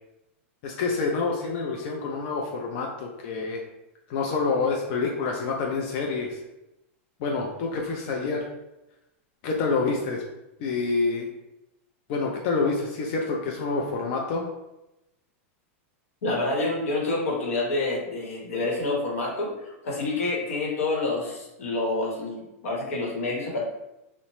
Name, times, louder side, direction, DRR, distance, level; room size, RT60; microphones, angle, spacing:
voice 1, 0.6-3.6 4.1-6.4 7.2-8.5 9.4-10.2 10.6-11.3 12.1-14.4, left 4 dB, 50° left, 0 dB, 0.4 m, -27 dB
voice 2, 16.2-23.6, left 2 dB, 85° left, -2 dB, 0.9 m, -28 dB
2.9 x 2.0 x 3.0 m, 0.94 s
supercardioid pair, 140°, 7 cm